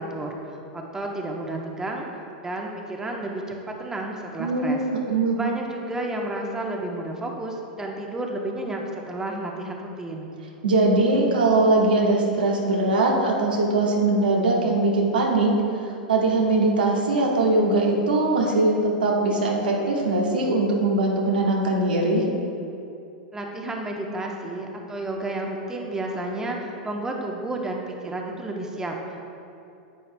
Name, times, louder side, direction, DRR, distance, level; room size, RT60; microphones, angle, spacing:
voice 1, 0.0-2.1 2.4-4.8 5.3-10.3 23.3-29.2, right 2 dB, 10° right, 0 dB, 0.9 m, -31 dB
voice 2, 4.4-5.4 10.6-15.5 16.1-22.2, right 2 dB, 85° right, -2 dB, 1.4 m, -21 dB
9.9 x 7.9 x 2.2 m, 2.7 s
hypercardioid pair, 100°, 5 cm